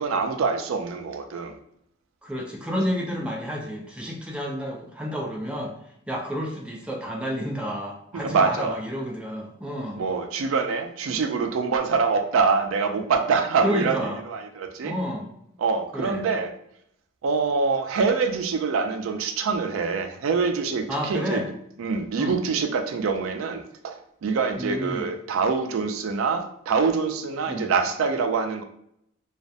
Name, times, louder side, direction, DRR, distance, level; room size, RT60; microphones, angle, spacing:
voice 1, 0.0-1.6 8.1-8.8 10.0-14.0 14.3-14.9 15.6-16.5 17.2-21.4 21.8-28.6, right 5 dB, 85° right, 6 dB, 0.4 m, -25 dB
voice 2, 2.2-5.7 6.1-10.0 13.6-14.2 14.8-15.3 15.9-16.3 20.9-21.5 22.2-22.4 24.6-25.1 27.5-27.7, equal, 5° right, -1 dB, 0.3 m, -30 dB
2.3 x 2.1 x 2.6 m, 0.73 s
head